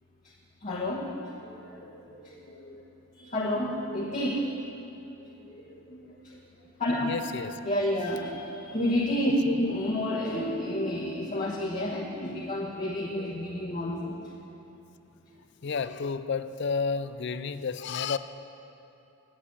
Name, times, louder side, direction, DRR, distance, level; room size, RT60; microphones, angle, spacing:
voice 1, 0.6-1.1 1.4-2.9 3.2-4.5 5.1-7.1 7.6-14.3, left 1 dB, 35° left, -6 dB, 1.3 m, -31 dB
voice 2, 7.0-7.6 9.5-9.7 15.6-18.2, left 5 dB, 55° left, 13 dB, 0.4 m, -31 dB
9.9 x 7.9 x 9.6 m, 2.9 s
head